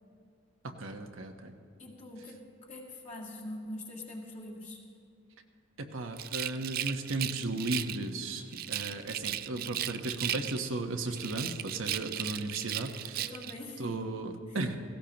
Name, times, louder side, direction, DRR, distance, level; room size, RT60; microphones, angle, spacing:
voice 1, 0.6-1.5 5.8-13.3 13.8-14.8, right 2 dB, 90° right, 4 dB, 1.1 m, -35 dB
voice 2, 1.8-4.8 13.2-14.1 14.5-14.6, left 1 dB, 40° left, -2 dB, 2.0 m, -43 dB
Rattle, 6.1-8.1 8.5-10.8 11.1-13.6, right 12 dB, 50° right, 0.3 m, -36 dB
17.5 x 16.5 x 2.9 m, 2.5 s
head